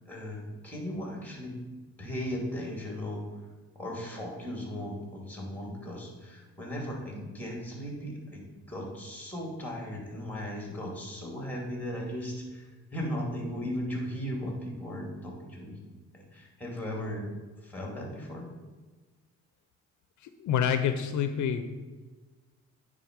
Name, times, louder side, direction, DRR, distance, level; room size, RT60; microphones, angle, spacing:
voice 1, 0.0-1.6 2.0-3.2 3.7-15.8 16.1-17.3 17.6-18.5, equal, 5° left, -1 dB, 2.5 m, -37 dB
voice 2, 20.2-21.7, left 8 dB, 75° left, 8 dB, 0.6 m, -28 dB
9.1 x 3.8 x 5.1 m, 1.3 s
cardioid pair, 90°, 30 cm